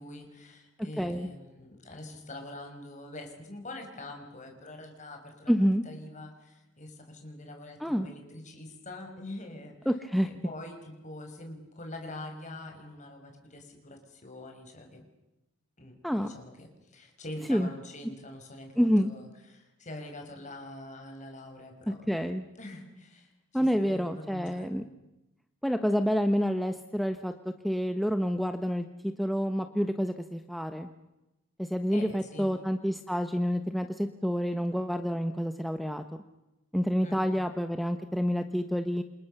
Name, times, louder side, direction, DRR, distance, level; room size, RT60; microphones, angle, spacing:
voice 1, 0.0-5.5 5.8-9.8 10.2-15.0 15.8-22.1 22.6-24.7 31.9-32.5 37.0-37.4, left 1 dB, 40° left, 4 dB, 6.1 m, -44 dB
voice 2, 1.0-1.3 5.5-5.8 7.8-8.1 9.8-10.3 16.0-16.3 17.5-17.7 18.8-19.1 21.9-22.4 23.5-24.8 25.6-30.9 31.6-36.0 36.7-39.0, equal, ahead, 7 dB, 1.1 m, -28 dB
29.0 x 27.0 x 6.8 m, 0.97 s
head